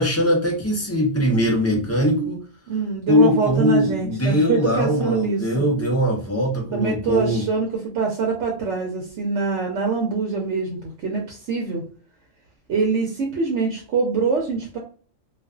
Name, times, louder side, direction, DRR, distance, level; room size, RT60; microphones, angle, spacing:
voice 1, 0.0-2.4 3.1-7.4, left 1 dB, 15° left, -2 dB, 0.5 m, -21 dB
voice 2, 2.7-5.6 6.7-11.8 12.7-14.8, right 4 dB, 70° right, -1 dB, 0.9 m, -24 dB
2.4 x 2.4 x 2.3 m, 0.41 s
omnidirectional pair, 1.3 m